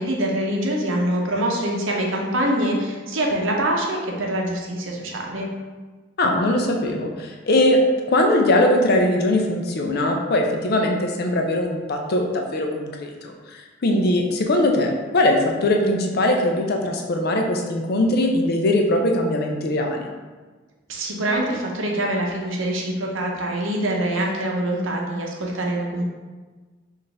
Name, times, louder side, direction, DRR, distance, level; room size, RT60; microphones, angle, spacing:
voice 1, 0.0-5.5 20.9-26.0, right 1 dB, 80° right, -1 dB, 0.7 m, -24 dB
voice 2, 6.2-7.8 8.1-20.1, left 1 dB, 50° left, 2 dB, 0.5 m, -21 dB
4.1 x 2.6 x 3.4 m, 1.3 s
head